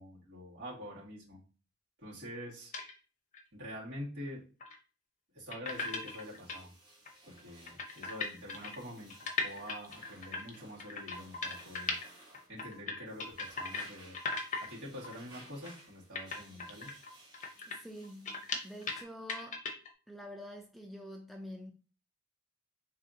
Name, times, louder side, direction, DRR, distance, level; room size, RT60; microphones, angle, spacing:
voice 1, 0.0-1.4 2.0-2.7 3.5-4.4 5.3-6.7 7.3-12.0 12.5-14.2 14.6-16.9, equal, 65° right, 2.0 m, -46 dB
sound 1, 2.7-2.9 3.3-3.4 4.6-4.8 5.5-6.6 7.0-7.1 7.4-7.5 7.7-12.1 12.3-13.9 14.1-14.7 15.0-15.2 15.6-15.8 16.1-19.0 19.3-19.9, left 4 dB, 40° left, 0.7 m, -38 dB
sound 2, 5.6-19.0, right 2 dB, 25° right, 1.2 m, -58 dB
voice 2, 17.7-18.4 18.6-19.6 20.1-21.7, equal, ahead, 0.3 m, -46 dB
3.3 x 2.8 x 3.7 m
head